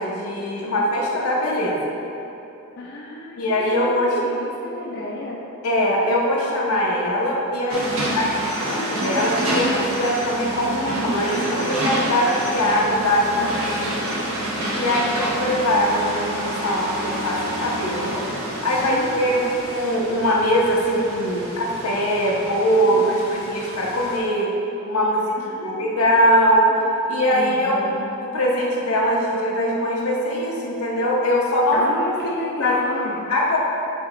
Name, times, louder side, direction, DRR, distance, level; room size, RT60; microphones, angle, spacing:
voice 1, 0.0-1.8 3.4-4.1 5.6-8.3 8.6-14.1 14.7-18.3 18.6-19.4 19.7-24.5 24.8-26.7 27.1-27.8 28.2-31.8 32.6-32.8 33.3-33.6, equal, 80° left, -3 dB, 1.0 m, -22 dB
voice 2, 2.8-5.4 8.0-8.7 13.3-14.1 14.8-15.5 18.8-19.7 22.8-23.3 25.3-26.0 27.3-28.1 31.7-33.2, left 1 dB, 50° left, -3 dB, 0.5 m, -32 dB
sound 1, 7.7-24.2, right 1 dB, 90° right, 1.2 m, -28 dB
8.2 x 2.9 x 4.2 m, 2.9 s
head